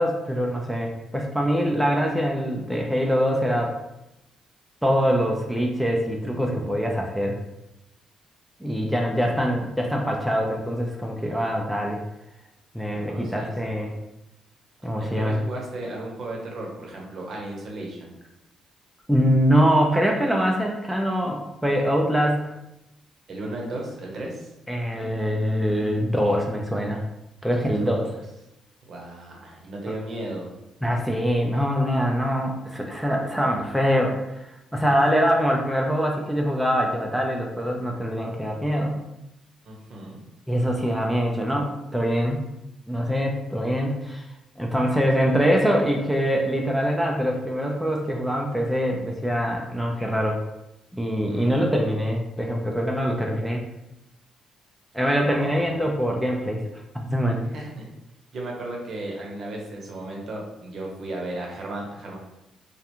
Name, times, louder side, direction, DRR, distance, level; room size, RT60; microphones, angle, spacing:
voice 1, 0.0-3.8 4.8-7.4 8.6-12.0 12.7-13.9 14.8-15.4 19.1-22.5 24.7-27.0 27.4-28.1 30.8-34.4 34.7-39.0 40.5-42.4 42.9-44.3 44.6-50.4 50.9-53.6 54.9-56.6 57.1-57.5, equal, ahead, 0 dB, 0.4 m, -24 dB
voice 2, 12.9-13.7 15.0-18.1 23.3-24.5 27.5-28.1 28.9-30.5 39.7-40.2 51.3-52.0 55.2-55.9 57.5-57.9 58.3-62.2, right 1 dB, 55° right, -1 dB, 0.7 m, -35 dB
2.4 x 2.1 x 2.8 m, 0.89 s
cardioid pair, 90°, 0 cm